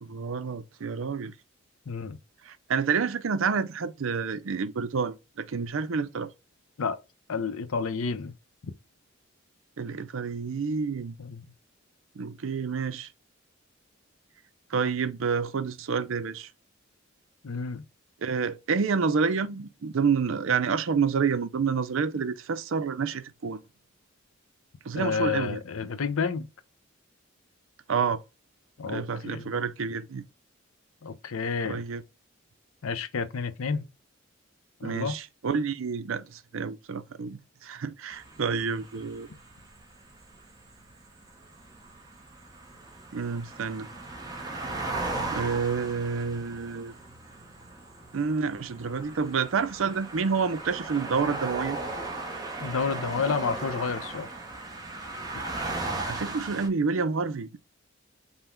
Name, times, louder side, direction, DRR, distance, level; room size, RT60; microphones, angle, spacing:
voice 1, 0.0-1.3 2.4-6.3 9.8-11.2 12.2-13.1 14.7-16.5 18.2-23.6 24.8-25.6 27.9-28.2 28.8-30.2 31.6-32.0 34.8-39.3 43.1-43.9 45.3-46.9 48.1-51.8 56.1-57.6, right 5 dB, 75° right, 0.5 m, -29 dB
voice 2, 1.9-2.2 6.8-7.0 7.3-8.3 8.6-8.7 11.2-11.4 17.4-17.8 25.0-26.5 28.8-29.5 31.0-31.8 32.8-33.9 34.8-35.2 52.6-54.3, left 5 dB, 85° left, 0.6 m, -30 dB
sound 1, 38.1-56.7, right 2 dB, 20° right, 0.8 m, -37 dB
5.5 x 2.2 x 4.4 m
head